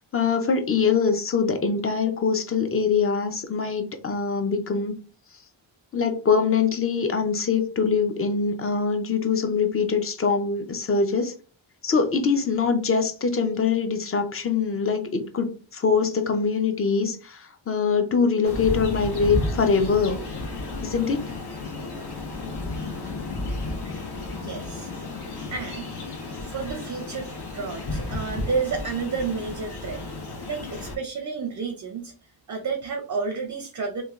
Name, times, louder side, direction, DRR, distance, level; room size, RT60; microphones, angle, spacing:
voice 1, 0.1-4.9 5.9-11.3 11.8-20.2 20.8-21.2, left 5 dB, 30° left, 7 dB, 0.4 m, -23 dB
sound 1, 18.4-31.0, left 2 dB, 50° left, 1.0 m, -33 dB
voice 2, 24.4-24.9 25.5-25.9 26.5-30.0 30.5-32.1 32.5-34.0, right 5 dB, 40° right, 4 dB, 0.4 m, -30 dB
3.2 x 2.2 x 2.3 m, 0.38 s
wide cardioid pair, 105°, 49 cm